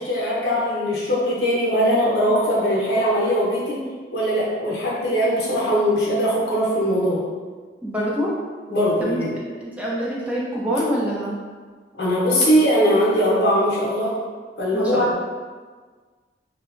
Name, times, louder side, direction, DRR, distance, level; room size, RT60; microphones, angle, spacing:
voice 1, 0.0-3.8 4.1-7.2 8.7-9.4 11.9-14.2 14.6-15.1, equal, 70° left, -5 dB, 0.7 m, -20 dB
voice 2, 7.8-8.3 9.0-9.2 9.6-11.4 14.7-15.1, equal, 10° right, -5 dB, 0.3 m, -25 dB
2.8 x 2.2 x 2.4 m, 1.5 s
head